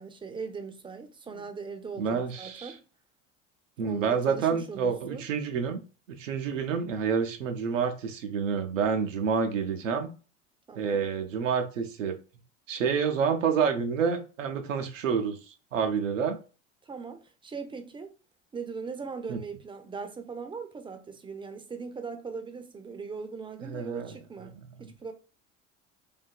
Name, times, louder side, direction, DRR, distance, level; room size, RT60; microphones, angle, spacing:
voice 1, 0.0-2.8 3.8-5.3 10.7-11.0 16.9-18.1 18.5-25.1, right 5 dB, 15° right, 0.4 m, -40 dB
voice 2, 2.0-2.7 3.8-5.8 6.1-10.1 10.7-12.2 12.7-15.4 15.7-16.4 19.3-19.4 23.6-24.1 24.4-24.9, right 6 dB, 85° right, 0.5 m, -28 dB
2.7 x 2.4 x 2.2 m
hypercardioid pair, 65°, 38 cm